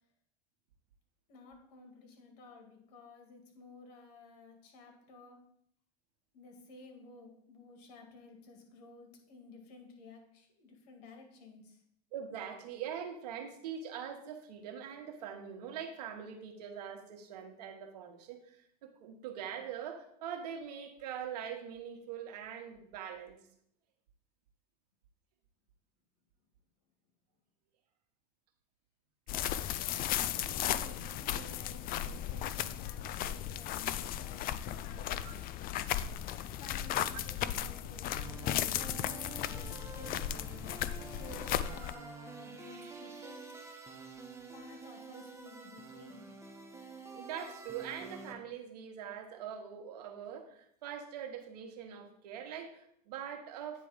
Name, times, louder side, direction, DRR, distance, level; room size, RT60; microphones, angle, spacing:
voice 1, 1.3-5.4 6.3-11.8 29.4-35.4 36.6-40.4 41.1-43.5 44.5-46.3, left 3 dB, 75° left, 2 dB, 2.1 m, -54 dB
voice 2, 12.1-18.6 19.0-23.4 35.2-35.4 47.1-53.9, right 8 dB, 85° right, 5 dB, 1.2 m, -43 dB
sound 1, 29.3-41.9, left 11 dB, 45° left, 0.4 m, -35 dB
sound 2, 38.1-48.3, right 4 dB, 15° right, 1.2 m, -49 dB
9.2 x 3.3 x 5.0 m, 0.69 s
supercardioid pair, 100°, 20 cm